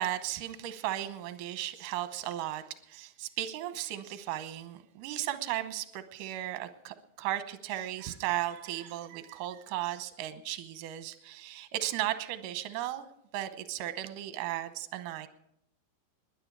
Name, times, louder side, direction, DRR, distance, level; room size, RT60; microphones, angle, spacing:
voice 1, 0.0-13.1 13.3-15.3, right 13 dB, 70° right, 2.3 m, -35 dB
21.0 x 9.7 x 4.7 m
omnidirectional pair, 4.3 m